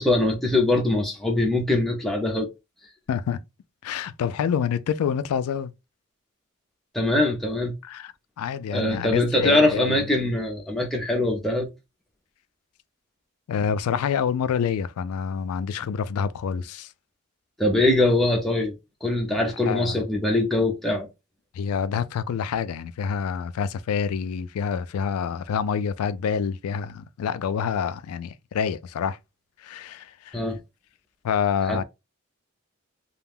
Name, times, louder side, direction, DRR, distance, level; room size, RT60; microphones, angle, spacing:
voice 1, 0.0-2.5 6.9-7.7 8.7-11.7 17.6-18.8 19.0-21.1 30.3-30.6 31.7-31.8, left 2 dB, ahead, 0.5 m, -22 dB
voice 2, 3.1-3.4 3.8-5.7 7.8-9.9 13.5-16.9 19.7-20.0 21.5-29.2 29.6-30.4 31.2-31.8, left 7 dB, 85° left, 0.3 m, -27 dB
2.4 x 2.1 x 3.4 m
head